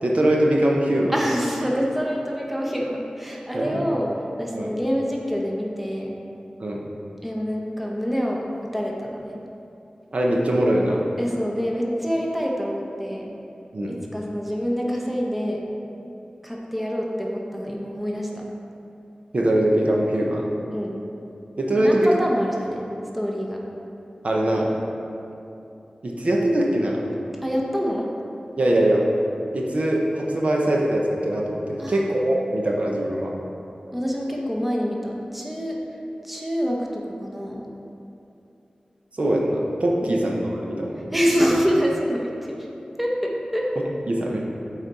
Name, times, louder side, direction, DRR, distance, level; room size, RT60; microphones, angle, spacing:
voice 1, 0.0-1.1 3.5-3.8 4.5-4.7 6.6-6.8 10.1-11.0 13.7-13.9 19.3-20.5 21.6-22.1 24.2-24.7 26.0-27.0 28.6-29.0 29.5-33.3 39.2-41.0 44.1-44.4, right 1 dB, 60° right, -2 dB, 0.8 m, -22 dB
voice 2, 1.1-4.1 4.4-6.2 7.2-9.4 11.2-13.3 13.9-15.7 16.4-18.4 20.7-21.0 21.8-22.8 23.1-23.6 27.4-28.1 31.8-32.1 33.9-35.8 36.2-37.7 40.0-40.2 41.1-42.7 43.0-43.7, equal, 5° right, -2 dB, 0.8 m, -26 dB
8.1 x 4.1 x 4.1 m, 2.8 s
wide cardioid pair, 75°, 2 cm